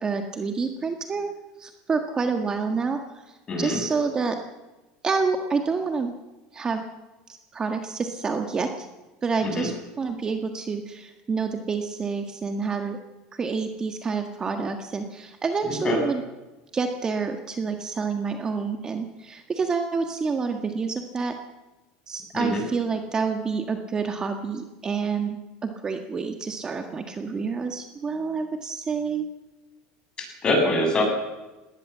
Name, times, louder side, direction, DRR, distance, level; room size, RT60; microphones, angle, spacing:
voice 1, 0.0-1.3 1.6-4.4 5.0-6.1 6.5-6.8 7.3-8.9 9.2-13.0 13.3-16.2 16.7-21.3 22.1-29.2, right 5 dB, 20° right, 5 dB, 1.6 m, -28 dB
voice 2, 3.5-3.8 9.4-9.7 15.7-16.0 22.3-22.6 30.2-31.0, left 2 dB, 25° left, 2 dB, 8.0 m, -24 dB
20.0 x 18.5 x 7.4 m, 1.1 s
supercardioid pair, 135°, 3 cm